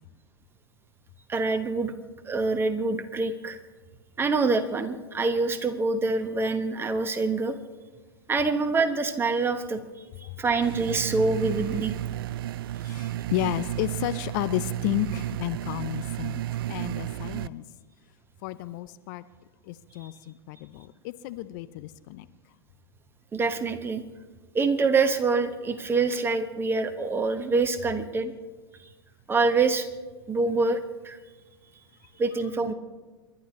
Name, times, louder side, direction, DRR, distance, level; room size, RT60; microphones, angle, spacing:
voice 1, 1.3-1.9 2.2-3.6 4.2-7.6 8.3-9.8 10.2-11.9 23.3-24.0 24.5-28.3 29.3-29.9 30.3-30.8 31.0-31.2 32.2-32.7, right 3 dB, 15° right, 9 dB, 1.2 m, -25 dB
sound 1, 10.6-17.5, right 13 dB, 55° right, 0.4 m, -32 dB
voice 2, 12.8-16.4 16.7-17.6 18.4-19.2 19.6-22.3, left 15 dB, 45° left, 13 dB, 0.6 m, -32 dB
29.5 x 11.5 x 3.2 m, 1.3 s
figure-of-eight pair, 100°, 14 cm